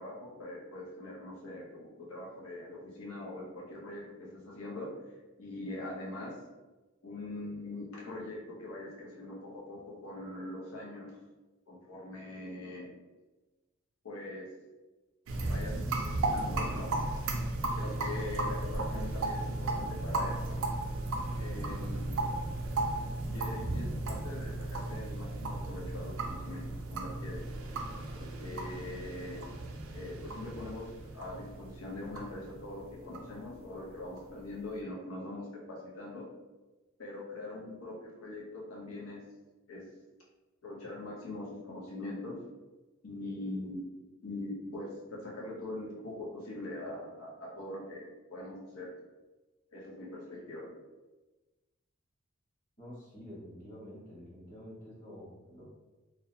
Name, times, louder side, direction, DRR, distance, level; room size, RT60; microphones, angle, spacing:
voice 1, 0.0-4.9 5.4-6.4 7.0-11.1 11.7-12.9 14.0-14.5 15.5-16.9 17.8-20.6 21.4-22.1 23.3-27.5 28.1-29.5 29.9-36.3 37.0-39.2 39.7-39.9 40.6-42.4 43.0-43.9 44.2-49.0 49.7-50.7, left 2 dB, 85° left, -4 dB, 0.7 m, -42 dB
sound 1, 15.3-34.5, right 2 dB, 70° right, 0.4 m, -35 dB
voice 2, 52.8-55.6, equal, 40° left, -7 dB, 1.2 m, -48 dB
2.7 x 2.0 x 2.7 m, 1.2 s
head